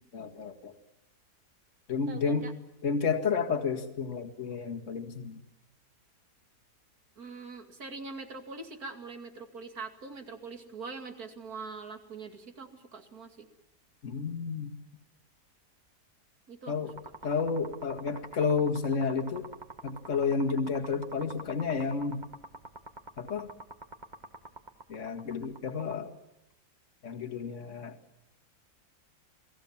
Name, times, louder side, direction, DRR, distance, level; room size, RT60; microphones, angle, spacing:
voice 1, 0.1-0.7 1.9-2.5 2.8-5.4 14.0-14.8 16.7-17.0 17.2-19.5 19.8-22.3 23.2-23.5 24.9-26.1 27.0-28.0, left 5 dB, 50° left, 3 dB, 2.3 m, -31 dB
voice 2, 2.1-2.5 7.2-13.5 16.5-16.7, right 4 dB, 65° right, 5 dB, 2.9 m, -43 dB
sound 1, 16.9-25.9, right 2 dB, 25° right, 2.0 m, -45 dB
29.0 x 20.0 x 7.3 m, 0.89 s
omnidirectional pair, 1.7 m